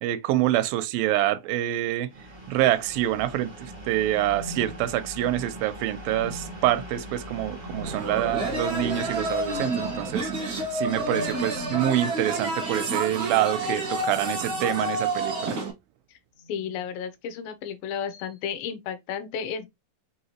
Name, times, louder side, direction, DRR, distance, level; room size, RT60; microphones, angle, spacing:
voice 1, 0.0-2.1 2.5-10.3 10.7-15.6, right 13 dB, 85° right, 2.3 m, -26 dB
sound 1, 2.1-13.7, equal, 35° right, 0.6 m, -42 dB
sound 2, 4.0-5.4 6.0-6.7 7.6-8.0 9.4-9.8 11.0-12.0 13.5-15.3 16.4-16.9 18.1-18.3, equal, 65° left, 1.7 m, -43 dB
sound 3, 7.8-15.7, right 2 dB, 65° right, 1.0 m, -29 dB
voice 2, 16.5-19.7, left 7 dB, 85° left, 2.4 m, -33 dB
5.6 x 2.8 x 2.9 m
omnidirectional pair, 4.0 m